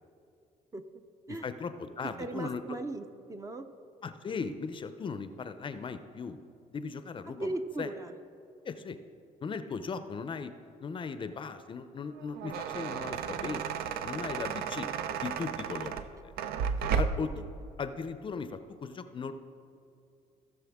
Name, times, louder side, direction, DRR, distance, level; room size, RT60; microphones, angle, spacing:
voice 1, 1.3-2.6 4.0-6.4 6.7-7.5 7.8-7.9 8.6-9.0 9.4-10.5 10.8-14.9 15.2-16.3 17.0-17.4 17.8-19.3, left 5 dB, 30° left, 10 dB, 0.5 m, -38 dB
voice 2, 2.0-3.7 7.3-8.1, right 2 dB, 20° right, 8 dB, 0.5 m, -37 dB
sound 1, 12.2-17.4, right 7 dB, 80° right, 0.5 m, -33 dB
16.5 x 6.8 x 3.5 m, 2.6 s
cardioid pair, 120°, 16 cm